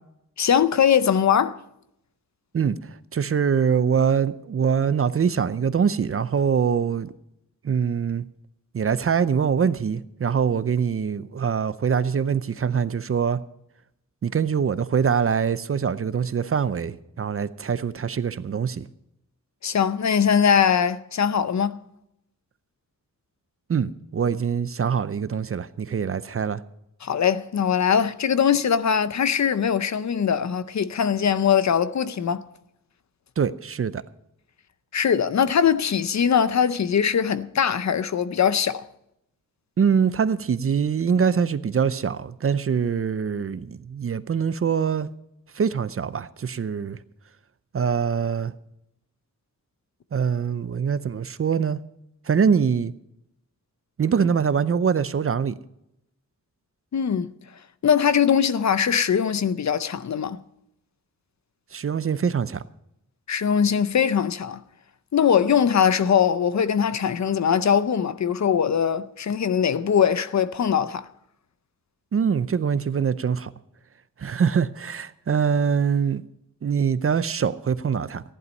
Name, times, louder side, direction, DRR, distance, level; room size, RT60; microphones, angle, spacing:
voice 1, 0.4-1.6 19.6-21.8 27.0-32.4 34.9-38.8 56.9-57.3 57.8-60.4 63.3-64.6 65.1-71.1, left 7 dB, 55° left, 0.6 m, -21 dB
voice 2, 3.1-7.1 7.6-8.2 8.7-13.4 14.2-18.9 23.7-26.6 33.4-34.0 39.8-45.1 45.5-47.0 47.7-48.5 50.1-51.8 52.3-52.9 54.0-55.5 61.7-62.6 72.1-73.5 74.2-76.2 76.6-78.2, right 6 dB, 40° right, 0.5 m, -23 dB
15.0 x 11.0 x 5.3 m
wide cardioid pair, 155°, 33 cm